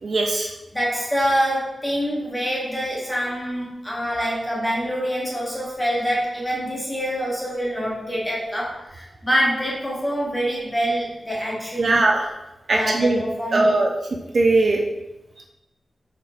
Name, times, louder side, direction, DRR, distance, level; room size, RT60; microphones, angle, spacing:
voice 1, 0.0-0.5 11.8-12.3 12.7-13.2 13.5-13.9 14.3-14.8, right 2 dB, 50° right, 0 dB, 0.4 m, -19 dB
voice 2, 0.7-12.0 12.7-13.8, equal, 10° left, -5 dB, 0.9 m, -25 dB
4.0 x 3.4 x 2.5 m, 0.94 s
wide cardioid pair, 150°, 0 cm